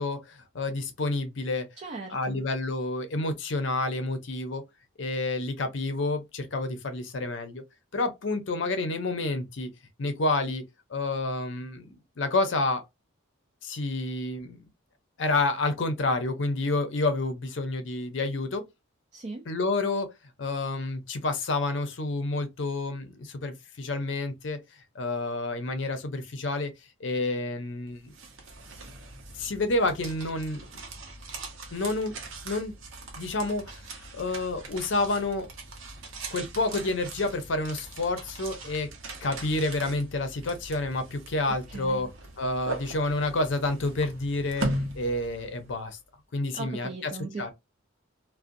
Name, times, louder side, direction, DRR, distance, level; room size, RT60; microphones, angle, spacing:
voice 1, 0.0-1.7 2.1-4.6 5.0-7.6 7.9-9.7 10.0-10.6 10.9-12.8 13.6-14.7 15.2-18.6 19.5-20.1 20.4-24.6 24.9-26.7 27.0-28.1 29.4-30.8 31.7-32.2 32.4-32.7 33.2-33.8 34.1-35.5 36.3-38.9 39.2-42.1 42.4-44.7 45.0-46.0 46.3-47.1 47.4-47.5, left 2 dB, 60° left, 0.6 m, -29 dB
voice 2, 1.8-2.4 19.1-19.5 41.5-42.1 46.5-47.5, right 3 dB, 35° right, 0.4 m, -39 dB
sound 1, 27.9-45.9, right 2 dB, 75° right, 0.7 m, -40 dB
2.5 x 2.1 x 2.5 m
head